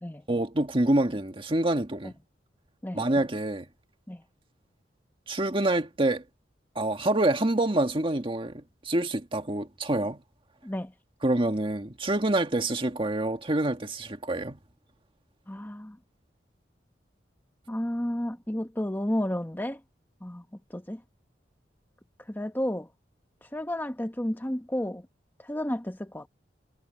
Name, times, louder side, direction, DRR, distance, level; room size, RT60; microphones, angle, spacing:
voice 1, 0.3-2.1 2.9-3.7 5.3-6.2 6.8-10.2 11.2-14.6, right 1 dB, 30° right, 1.8 m, -26 dB
voice 2, 15.5-16.0 17.7-19.8 20.2-20.4 20.7-21.0 22.3-22.9 23.4-25.1 25.4-26.3, left 1 dB, 10° left, 1.0 m, -32 dB
head